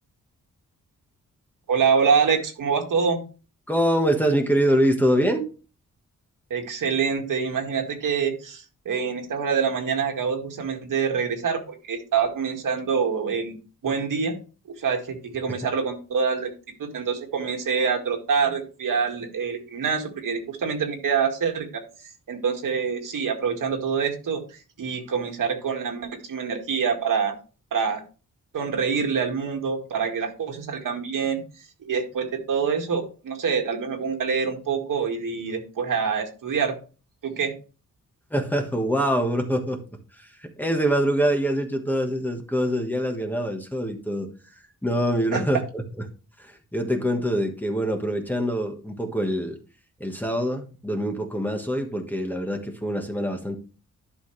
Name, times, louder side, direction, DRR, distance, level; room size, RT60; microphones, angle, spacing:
voice 1, 1.7-3.2 6.5-14.4 14.7-16.5 16.8-21.8 22.3-27.3 27.7-28.0 28.5-36.8 37.2-37.5 45.3-45.4, right 6 dB, 75° right, 3 dB, 2.0 m, -26 dB
voice 2, 3.7-5.4 38.3-39.8 40.1-44.3 44.8-45.8 46.4-49.6 50.0-53.6, equal, 5° left, 3 dB, 1.3 m, -24 dB
11.5 x 5.8 x 3.2 m, 0.34 s
wide cardioid pair, 150°, 32 cm